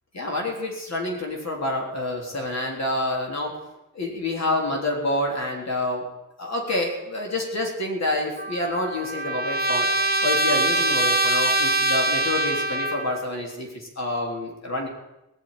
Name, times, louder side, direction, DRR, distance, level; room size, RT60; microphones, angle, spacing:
voice 1, 0.1-3.6 3.9-6.1 6.4-9.9 10.2-14.9, left 2 dB, 55° left, 0 dB, 3.7 m, -28 dB
Trumpet, 8.4-13.3, right 2 dB, 30° right, 1.2 m, -23 dB
18.0 x 7.1 x 9.8 m, 0.93 s
wide cardioid pair, 125°, 32 cm